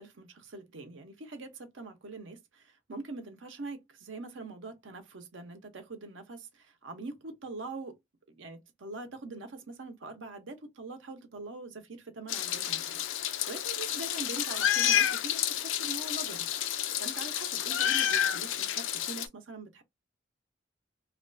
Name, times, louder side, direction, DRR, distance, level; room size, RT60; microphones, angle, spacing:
voice 1, 0.0-8.0 8.4-13.0 13.5-16.5 17.0-19.8, right 3 dB, 80° right, 0.7 m, -43 dB
Meow, 12.3-19.3, left 10 dB, 90° left, 0.4 m, -30 dB
2.4 x 2.2 x 2.5 m
head